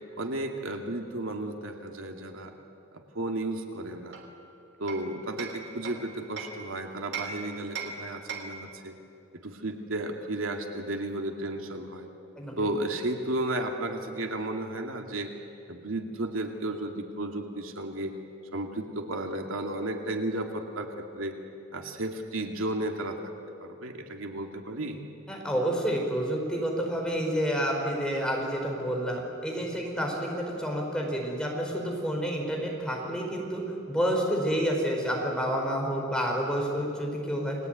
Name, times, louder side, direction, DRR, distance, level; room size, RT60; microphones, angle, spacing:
voice 1, 0.2-2.5 2.9-4.2 4.8-9.0 9.3-12.1 12.6-15.3 15.7-18.1 18.5-21.4 21.7-23.2 23.6-25.0, right 1 dB, 85° right, 3 dB, 2.5 m, -33 dB
Hammer, 4.1-6.6 7.1-8.7, right 5 dB, 55° right, 3.4 m, -39 dB
voice 2, 25.3-37.6, equal, 5° left, -1 dB, 5.1 m, -29 dB
30.0 x 21.0 x 9.5 m, 2.7 s
head